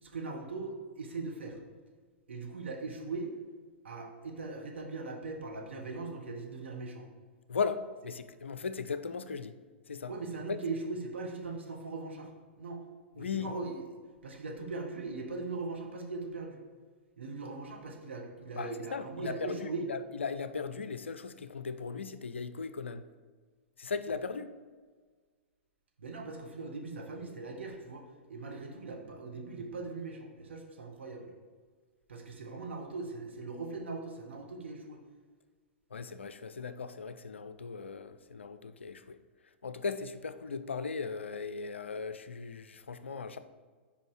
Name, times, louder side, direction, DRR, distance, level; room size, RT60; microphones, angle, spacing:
voice 1, 0.0-1.6 2.3-3.3 3.8-7.0 10.1-12.8 13.1-16.6 17.2-19.8 26.0-31.3 32.1-35.0, right 3 dB, 70° right, 1 dB, 1.1 m, -40 dB
voice 2, 7.5-9.5 9.9-10.1 10.5-10.6 13.2-13.5 18.6-23.0 23.8-24.5 35.9-39.2 39.6-43.4, left 5 dB, 70° left, 12 dB, 0.4 m, -37 dB
5.2 x 5.0 x 4.7 m, 1.5 s
figure-of-eight pair, 105°, 7 cm